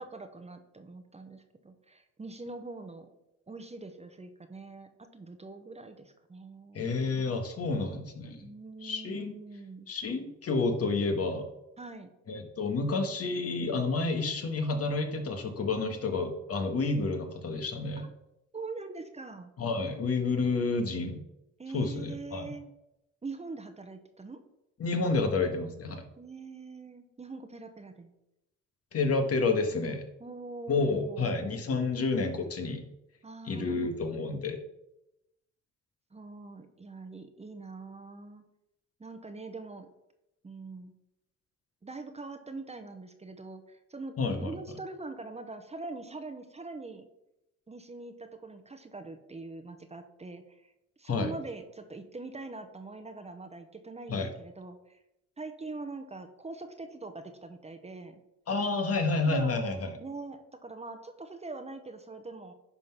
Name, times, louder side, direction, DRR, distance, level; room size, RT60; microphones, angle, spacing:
voice 1, 0.0-3.1 3.5-6.9 8.4-9.9 11.8-12.1 18.0-18.1 18.5-19.5 21.6-22.7 23.2-24.4 25.0-25.4 26.2-28.1 30.2-31.4 33.2-34.0 36.1-38.4 39.0-39.9 40.4-40.9 41.8-47.1 47.7-50.7 51.0-55.0 55.4-58.2 59.3-62.5, right 3 dB, 20° right, 7 dB, 0.9 m, -43 dB
voice 2, 6.7-8.4 8.8-9.4 9.9-11.5 12.3-18.1 19.6-21.2 21.7-22.5 24.8-26.1 28.9-30.1 30.7-32.8 33.4-34.6 44.2-44.5 51.1-51.3 54.1-54.3 58.5-60.0, left 3 dB, 50° left, 5 dB, 1.5 m, -30 dB
10.5 x 3.9 x 5.9 m, 0.87 s
cardioid pair, 90°, 30 cm